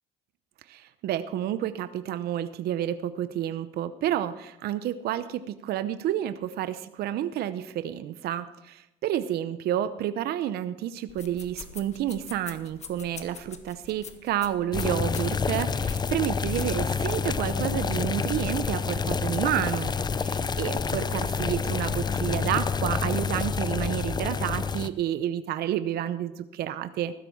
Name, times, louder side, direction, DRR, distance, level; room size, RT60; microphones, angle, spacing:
voice 1, 0.7-19.9 20.2-27.1, right 11 dB, 70° right, 12 dB, 0.7 m, -30 dB
sound 1, 11.1-17.3, left 6 dB, 40° left, 1.5 m, -46 dB
sound 2, 14.7-24.9, left 5 dB, 25° left, 0.6 m, -28 dB
15.0 x 12.5 x 4.6 m, 0.92 s
cardioid pair, 110°, 17 cm